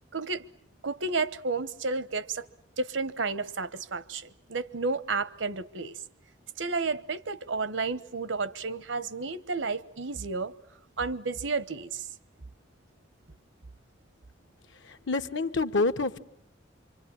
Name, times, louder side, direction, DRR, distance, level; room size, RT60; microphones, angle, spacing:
voice 1, 0.1-0.4 0.8-2.5 2.8-6.0 6.6-10.5 11.0-12.1, right 4 dB, 90° right, 1.1 m, -31 dB
voice 2, 15.1-16.2, left 3 dB, 80° left, 1.3 m, -27 dB
27.0 x 25.0 x 8.7 m
head